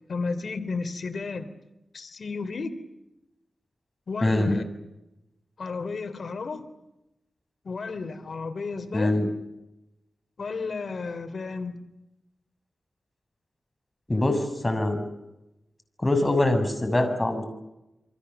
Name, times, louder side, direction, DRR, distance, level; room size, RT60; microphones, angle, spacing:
voice 1, 0.1-1.5 1.9-2.7 4.1-4.6 5.6-6.6 7.6-9.1 10.4-11.7, left 4 dB, 70° left, 9 dB, 3.1 m, -32 dB
voice 2, 4.2-4.6 8.9-9.3 14.1-15.0 16.0-17.4, left 1 dB, 25° left, 7 dB, 6.6 m, -23 dB
28.5 x 24.5 x 7.0 m, 0.92 s
cardioid pair, 65°, 0 cm